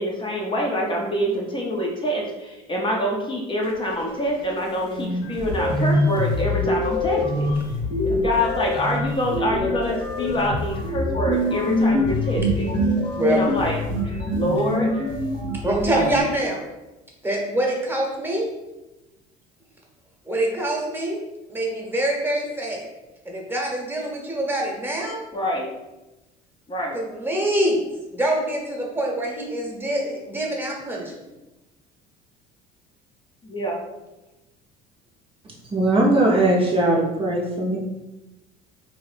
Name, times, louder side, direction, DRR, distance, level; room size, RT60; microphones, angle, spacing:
voice 1, 0.0-7.5 8.0-12.7 13.3-15.0 15.9-16.3 25.3-25.7 26.7-27.0 33.4-33.8, equal, 25° left, -1 dB, 0.6 m, -26 dB
sound 1, 4.6-4.7 5.0-16.2, left 1 dB, 65° left, 1.2 m, -24 dB
voice 2, 15.6-16.6 17.2-18.5 20.2-21.2 21.5-22.9 23.2-25.2 26.9-27.8 28.1-31.1, right 1 dB, 10° right, -1 dB, 1.0 m, -25 dB
voice 3, 35.7-37.8, right 2 dB, 30° right, -3 dB, 0.6 m, -19 dB
2.8 x 2.7 x 3.3 m, 1.0 s
supercardioid pair, 90°, 20 cm